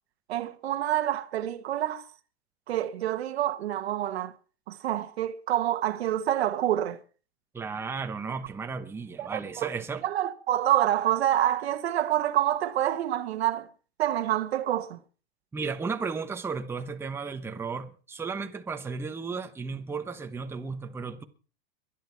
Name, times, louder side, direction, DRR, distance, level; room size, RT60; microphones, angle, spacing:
voice 1, 0.3-2.0 2.7-4.3 4.7-7.0 9.2-13.7 14.0-15.0, right 12 dB, 85° right, 1.6 m, -27 dB
voice 2, 7.5-10.0 15.5-21.2, right 5 dB, 10° right, 1.0 m, -34 dB
23.0 x 10.5 x 4.6 m
supercardioid pair, 150°, 31 cm